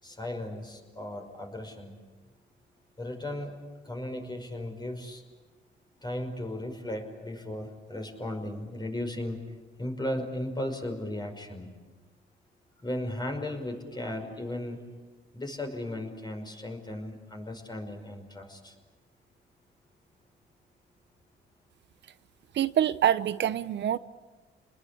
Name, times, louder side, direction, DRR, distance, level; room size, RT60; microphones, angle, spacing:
voice 1, 0.0-1.9 3.0-5.2 6.0-9.4 9.8-11.7 12.8-14.8 15.3-18.7, left 1 dB, 20° left, 4 dB, 5.6 m, -36 dB
voice 2, 22.5-24.0, right 10 dB, 65° right, 15 dB, 0.9 m, -25 dB
29.5 x 20.5 x 8.6 m, 1.3 s
cardioid pair, 90°, 20 cm